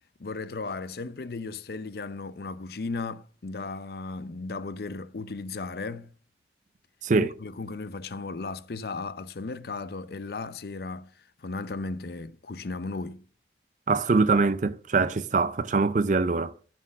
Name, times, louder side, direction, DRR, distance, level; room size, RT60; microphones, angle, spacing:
voice 1, 0.2-6.1 7.2-11.1 11.4-13.2, left 3 dB, 55° left, 0.5 m, -35 dB
voice 2, 7.0-7.3 13.9-16.5, right 4 dB, 45° right, 0.5 m, -23 dB
11.0 x 4.5 x 6.1 m
head